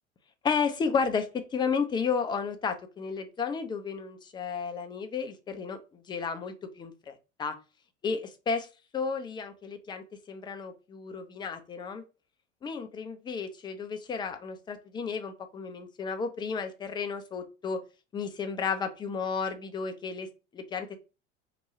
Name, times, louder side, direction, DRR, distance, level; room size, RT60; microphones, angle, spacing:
voice 1, 0.4-7.6 8.0-8.7 8.9-12.0 12.6-17.8 18.1-21.0, left 5 dB, 15° left, 8 dB, 0.4 m, -33 dB
2.8 x 2.2 x 4.2 m, 0.30 s
figure-of-eight pair, 75°, 36 cm